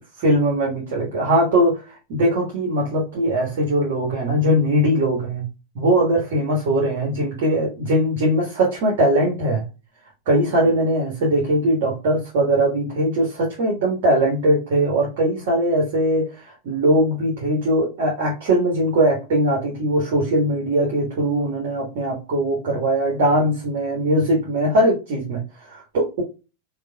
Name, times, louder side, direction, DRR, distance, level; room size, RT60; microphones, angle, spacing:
voice 1, 0.2-5.4 5.7-9.6 10.2-26.2, right 1 dB, 50° right, -2 dB, 1.4 m, -20 dB
5.2 x 2.5 x 2.2 m, 0.29 s
figure-of-eight pair, 90°, 0 cm